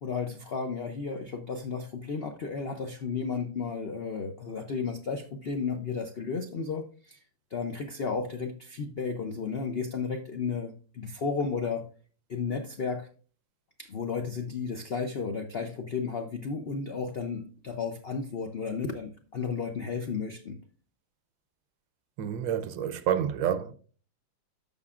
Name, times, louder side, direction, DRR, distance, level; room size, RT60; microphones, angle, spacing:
voice 1, 0.0-7.2 7.5-11.8 12.3-13.1 13.8-20.6, left 5 dB, 80° left, 0.5 m, -33 dB
voice 2, 22.2-23.7, right 9 dB, 80° right, 1.4 m, -28 dB
13.5 x 5.3 x 2.4 m
omnidirectional pair, 2.1 m